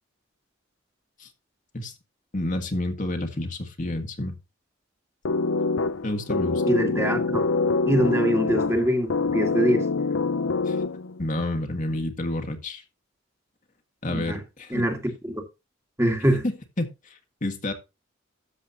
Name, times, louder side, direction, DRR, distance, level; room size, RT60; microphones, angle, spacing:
voice 1, 2.3-4.4 6.0-6.8 10.6-10.8 11.2-12.8 14.0-14.9 16.4-17.7, left 1 dB, 40° left, 1.7 m, -30 dB
sound 1, 5.3-11.2, left 3 dB, 85° left, 0.7 m, -25 dB
voice 2, 6.7-7.4 7.8-9.9 14.1-14.4 14.7-15.4 16.0-16.4, equal, 15° right, 2.0 m, -24 dB
13.0 x 7.3 x 2.8 m
head